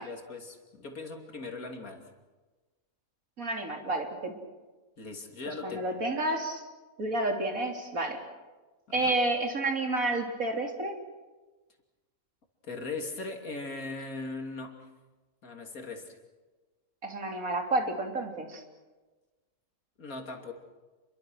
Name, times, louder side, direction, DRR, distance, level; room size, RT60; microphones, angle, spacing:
voice 1, 0.0-2.0 5.0-5.8 8.9-9.1 12.6-14.8 15.4-16.2 20.0-20.5, left 3 dB, 80° left, 3 dB, 3.3 m, -39 dB
voice 2, 3.4-4.3 5.6-6.6 7.0-8.2 8.9-11.0 17.0-18.6, right 2 dB, 75° right, 3 dB, 3.6 m, -30 dB
28.5 x 23.0 x 6.3 m, 1.2 s
omnidirectional pair, 1.5 m